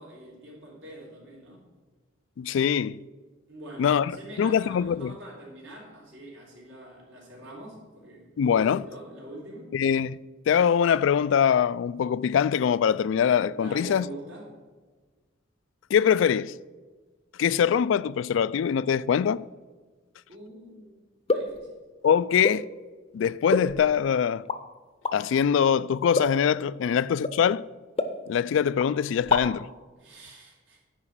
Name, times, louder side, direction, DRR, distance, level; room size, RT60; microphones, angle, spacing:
voice 1, 0.0-1.6 3.5-9.8 13.5-14.6 20.3-21.0 21.3-21.7 30.0-30.8, right 1 dB, 70° right, 3.4 m, -44 dB
voice 2, 2.4-3.0 3.8-4.1 4.4-5.2 8.4-8.8 9.7-10.2 10.5-14.1 15.9-16.5 17.4-19.5 22.0-22.6 23.1-24.5 25.1-27.7 28.3-29.7, left 8 dB, 70° left, 0.3 m, -23 dB
sound 1, 21.3-21.6 22.4-22.7 23.5-24.0 24.4-24.6 25.0-25.2 26.2-26.5 27.2-27.4 28.0-28.5 28.8-28.9 29.2-29.7, left 3 dB, 30° left, 0.6 m, -27 dB
9.8 x 5.1 x 7.6 m
head